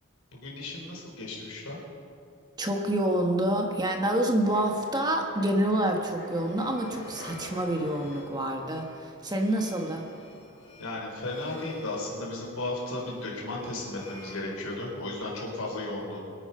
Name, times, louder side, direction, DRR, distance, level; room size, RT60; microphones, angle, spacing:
voice 1, 0.3-1.8 10.8-16.3, left 2 dB, 90° left, -2 dB, 4.6 m, -35 dB
voice 2, 2.6-10.0, right 1 dB, 20° right, 2 dB, 1.4 m, -27 dB
sound 1, 4.4-13.1 13.5-14.3 14.6-15.5, left 1 dB, 55° left, 3.9 m, -49 dB
sound 2, 6.1-15.2, left 1 dB, 25° left, 2.3 m, -50 dB
24.5 x 9.0 x 5.5 m, 2.4 s
head